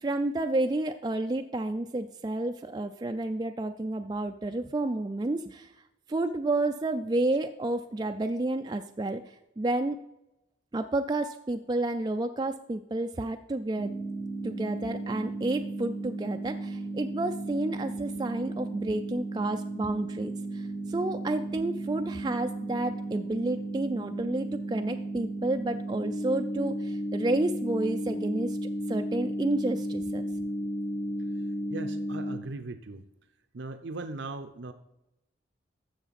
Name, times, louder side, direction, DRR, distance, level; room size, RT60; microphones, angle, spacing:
voice 1, 0.0-5.7 6.1-10.0 10.7-13.9 14.4-28.6 28.9-30.2, right 2 dB, 20° right, 6 dB, 0.3 m, -30 dB
sound 1, 13.8-32.4, right 1 dB, 40° left, 1.5 m, -34 dB
voice 2, 31.7-33.0 33.5-34.7, right 3 dB, 70° right, 9 dB, 0.6 m, -38 dB
12.5 x 7.2 x 4.1 m, 0.91 s
head